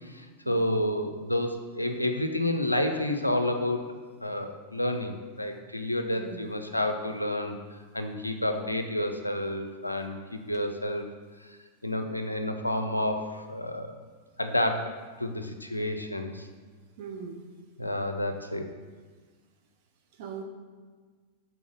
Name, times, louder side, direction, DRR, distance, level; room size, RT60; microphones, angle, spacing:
voice 1, 0.0-3.8 4.2-7.6 7.9-11.0 11.4-11.6 11.8-14.0 14.4-14.9 15.2-16.5 17.8-18.7, left 1 dB, 85° left, 6 dB, 0.5 m, -30 dB
voice 2, 6.2-6.5 17.0-17.4 20.2-20.4, right 6 dB, 50° right, 3 dB, 0.6 m, -40 dB
6.1 x 4.1 x 5.2 m, 1.5 s
figure-of-eight pair, 90°, 0 cm